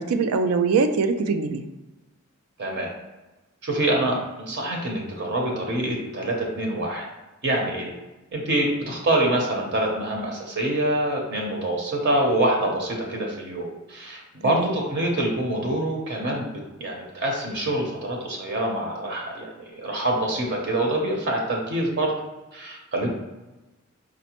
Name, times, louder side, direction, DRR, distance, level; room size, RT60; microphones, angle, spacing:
voice 1, 0.0-1.6 14.4-14.7, right 4 dB, 90° right, 8 dB, 0.4 m, -23 dB
voice 2, 2.6-2.9 3.6-7.1 7.4-7.9 8.3-16.5 16.8-22.1 22.5-23.1, right 1 dB, 55° right, 0 dB, 0.7 m, -25 dB
5.0 x 2.1 x 2.9 m, 1.1 s
head